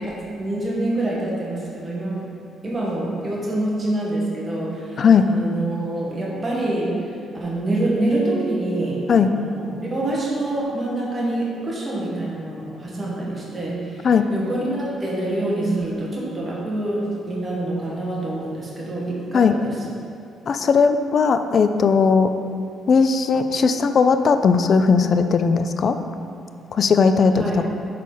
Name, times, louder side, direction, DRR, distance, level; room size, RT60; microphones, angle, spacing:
voice 1, 0.0-2.2 2.6-6.9 7.4-19.7 27.3-27.6, right 1 dB, 25° right, -5 dB, 1.5 m, -26 dB
voice 2, 5.0-5.3 9.1-9.3 14.0-14.2 19.3-19.5 20.5-22.3 22.9-26.0 26.7-27.7, left 5 dB, 50° left, 9 dB, 0.4 m, -17 dB
6.4 x 4.1 x 5.6 m, 2.4 s
cardioid pair, 105°, 0 cm